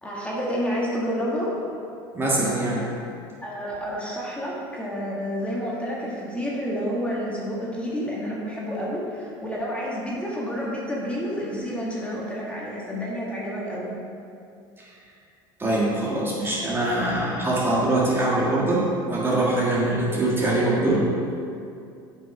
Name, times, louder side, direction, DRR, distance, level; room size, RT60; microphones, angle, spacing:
voice 1, 0.0-1.5 3.4-13.9 20.7-20.8, equal, 10° left, -5 dB, 1.8 m, -29 dB
voice 2, 2.1-2.9 14.8-14.9 15.6-21.1, right 1 dB, 20° right, -5 dB, 1.7 m, -23 dB
7.9 x 5.4 x 5.0 m, 2.5 s
supercardioid pair, 100°, 12 cm